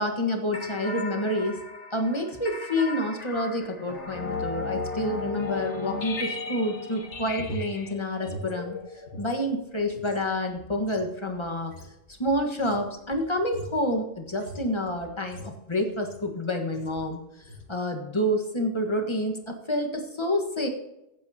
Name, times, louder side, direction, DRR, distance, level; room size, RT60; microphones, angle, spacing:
voice 1, 0.0-1.6 1.9-8.8 9.2-11.7 12.1-17.2 17.7-20.7, left 1 dB, 25° left, 3 dB, 1.5 m, -28 dB
sound 1, 0.5-9.4, left 4 dB, 85° left, 1.7 m, -36 dB
sound 2, 7.0-9.4 9.7-16.4 16.7-17.1 17.4-17.7, equal, 65° left, 1.9 m, -43 dB
15.0 x 9.2 x 2.9 m, 0.90 s
omnidirectional pair, 1.2 m